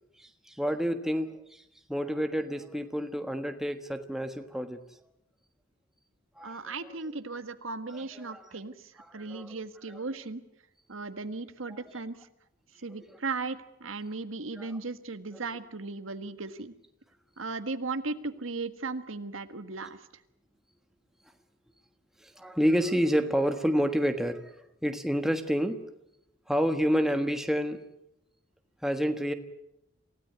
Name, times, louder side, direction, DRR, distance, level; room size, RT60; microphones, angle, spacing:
voice 1, 0.2-1.6 1.9-4.8 6.4-6.5 8.2-8.4 9.1-9.6 14.6-14.8 22.2-24.5 24.8-25.8 26.5-27.8 28.8-29.3, equal, ahead, 6 dB, 1.4 m, -28 dB
voice 2, 6.4-10.4 10.9-12.3 12.8-16.7 17.4-20.1, right 3 dB, 80° right, 10 dB, 1.6 m, -37 dB
28.0 x 17.0 x 9.5 m, 0.82 s
head